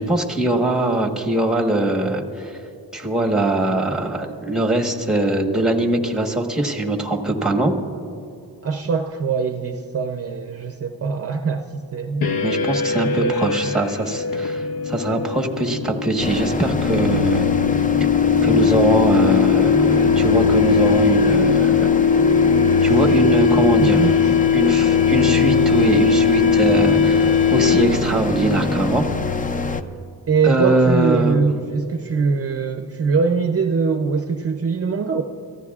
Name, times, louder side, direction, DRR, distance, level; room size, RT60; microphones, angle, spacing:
voice 1, 0.0-2.6 2.9-7.7 12.4-17.5 18.4-21.9 22.8-24.0 24.5-29.1 30.4-31.4, right 2 dB, ahead, 2 dB, 1.2 m, -21 dB
voice 2, 8.6-12.2 13.0-13.4 13.6-13.7 23.8-24.3 30.3-35.2, right 5 dB, 40° right, 5 dB, 0.6 m, -22 dB
sound 1, 12.2-28.1, left 6 dB, 70° left, 0.8 m, -19 dB
sound 2, 16.2-29.8, left 4 dB, 20° left, 0.4 m, -24 dB
29.0 x 15.0 x 2.4 m, 2.8 s
wide cardioid pair, 155°, 39 cm